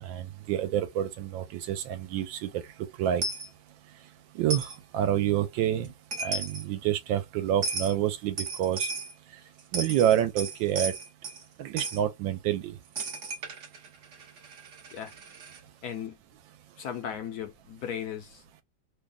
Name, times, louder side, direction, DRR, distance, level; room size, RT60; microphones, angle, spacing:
voice 1, 0.0-2.6 3.0-3.2 4.3-5.9 6.2-8.9 9.7-10.9 11.6-12.8, right 11 dB, 80° right, 1.4 m, -28 dB
Coin (dropping), 3.2-3.5 4.5-4.8 5.8-5.9 6.1-6.6 7.6-7.9 8.4-9.1 9.6-11.4 11.8-12.0 13.0-15.6, right 3 dB, 50° right, 1.0 m, -34 dB
voice 2, 15.8-16.2 16.8-18.6, left 8 dB, 70° left, 0.9 m, -37 dB
3.3 x 2.2 x 3.6 m
omnidirectional pair, 2.1 m